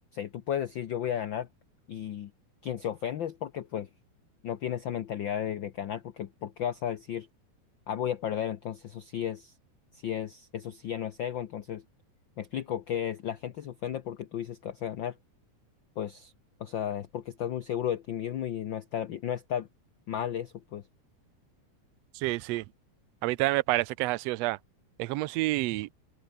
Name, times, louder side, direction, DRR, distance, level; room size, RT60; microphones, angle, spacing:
voice 1, 0.1-1.5 1.9-2.3 2.6-3.9 4.4-7.3 7.9-9.5 10.0-11.8 12.4-15.1 16.0-16.3 16.6-19.7 20.1-20.8, left 9 dB, 80° left, 1.0 m, -34 dB
voice 2, 22.1-22.6 23.2-24.6 25.0-25.9, right 19 dB, 75° right, 1.6 m, -28 dB
open air
omnidirectional pair, 3.5 m